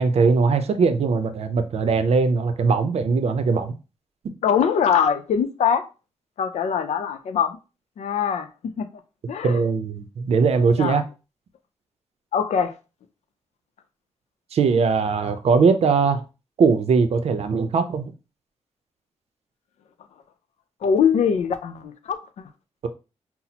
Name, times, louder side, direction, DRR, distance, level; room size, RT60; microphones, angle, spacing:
voice 1, 0.0-3.7 9.4-11.0 14.5-16.2 16.6-18.1, right 5 dB, 65° right, 0.6 m, -20 dB
voice 2, 4.4-5.8 6.4-7.6 8.0-8.9 9.3-9.6 10.8-11.0 12.3-12.7 20.8-22.5, left 7 dB, 85° left, 0.5 m, -22 dB
5.7 x 2.0 x 2.8 m
cardioid pair, 90°, 11 cm